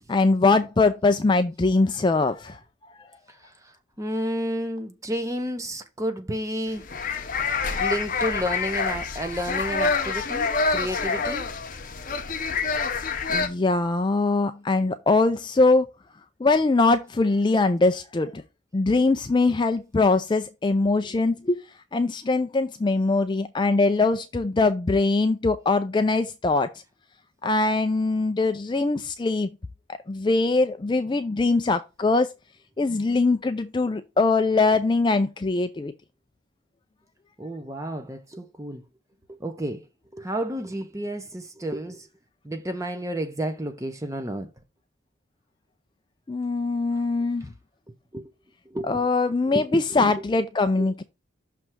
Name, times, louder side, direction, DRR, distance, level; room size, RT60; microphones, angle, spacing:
voice 1, 0.1-2.6 13.3-15.9 16.4-18.4 18.7-21.6 21.9-26.7 27.4-29.5 30.1-32.3 32.8-35.9 46.3-47.5 48.9-50.9, left 3 dB, 20° left, 0.3 m, -22 dB
voice 2, 3.4-6.9 7.8-11.5 37.4-38.8 39.3-39.9 40.1-42.1 42.4-44.5 48.1-48.3 48.7-49.1 49.5-50.1 50.8-51.1, equal, 15° right, 0.8 m, -31 dB
sound 1, 6.7-13.5, left 4 dB, 40° left, 0.7 m, -27 dB
6.2 x 3.3 x 5.9 m
head